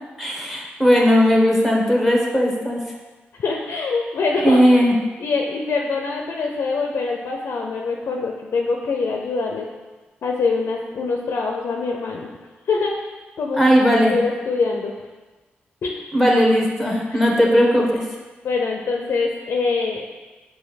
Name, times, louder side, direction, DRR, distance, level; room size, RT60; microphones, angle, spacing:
voice 1, 0.2-2.8 4.4-4.9 13.6-14.2 16.1-18.0, equal, 5° right, -1 dB, 1.0 m, -17 dB
voice 2, 3.4-4.9 5.2-9.7 10.2-12.3 12.7-13.1 13.4-13.6 14.1-14.9 15.8-16.0 17.1-17.2 18.4-20.0, left 4 dB, 70° left, 1 dB, 0.4 m, -24 dB
5.0 x 2.5 x 4.0 m, 1.2 s
cardioid pair, 55°, 4 cm